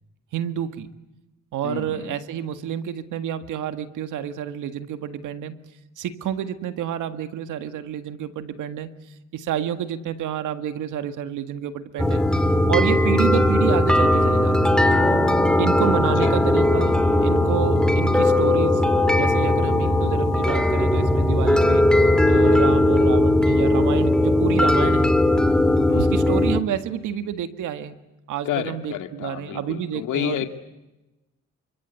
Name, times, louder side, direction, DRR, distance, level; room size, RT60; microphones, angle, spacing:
voice 1, 0.3-0.9 1.5-5.6 6.0-8.9 9.3-12.2 12.7-14.6 15.6-17.0 17.2-18.8 19.1-21.8 22.2-25.1 25.9-28.0 28.3-30.5, right 10 dB, 85° right, 10 dB, 1.8 m, -29 dB
voice 2, 1.6-2.1 16.2-16.4 25.9-26.3 28.5-30.5, left 11 dB, 80° left, 7 dB, 2.2 m, -30 dB
sound 1, 12.0-26.6, left 1 dB, 5° left, 2.5 m, -18 dB
28.5 x 25.0 x 8.2 m, 1.0 s
cardioid pair, 90°, 30 cm